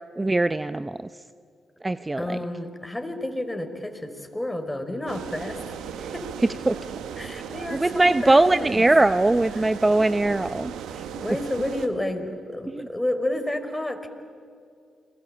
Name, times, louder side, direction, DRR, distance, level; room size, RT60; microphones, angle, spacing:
voice 1, 0.2-1.0 1.8-2.4 6.0-6.1 6.7-6.8 7.7-11.0 12.7-12.9, right 2 dB, 25° right, 12 dB, 0.8 m, -21 dB
voice 2, 2.2-6.3 7.2-8.8 9.6-9.7 11.1-14.1, left 1 dB, 10° left, 6 dB, 5.0 m, -30 dB
sound 1, 5.1-11.9, right 7 dB, 80° right, 1.6 m, -36 dB
29.5 x 22.5 x 8.9 m, 2.4 s
hypercardioid pair, 45°, 0 cm